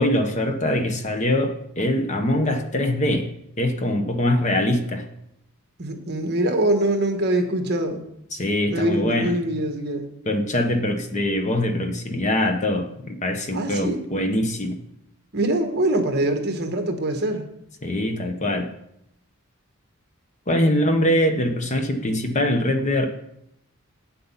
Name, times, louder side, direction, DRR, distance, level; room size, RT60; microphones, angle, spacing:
voice 1, 0.0-3.3 3.6-5.0 8.3-9.4 10.3-14.8 17.8-18.7 20.5-23.1, left 1 dB, 30° left, 6 dB, 0.9 m, -23 dB
voice 2, 5.8-8.0 8.7-10.1 13.5-14.0 15.3-17.4, right 1 dB, 45° right, 5 dB, 1.3 m, -23 dB
8.5 x 7.8 x 5.6 m, 0.76 s
head